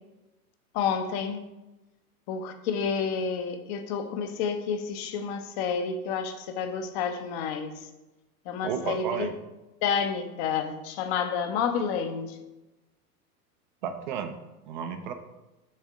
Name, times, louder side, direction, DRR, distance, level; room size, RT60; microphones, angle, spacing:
voice 1, 0.7-1.4 2.3-7.9 8.5-9.3 9.8-12.4, left 6 dB, 25° left, 8 dB, 0.6 m, -30 dB
voice 2, 8.6-9.3 13.8-14.4 14.7-15.1, right 7 dB, 30° right, 7 dB, 0.5 m, -32 dB
7.4 x 3.5 x 4.8 m, 1.0 s
figure-of-eight pair, 95°, 47 cm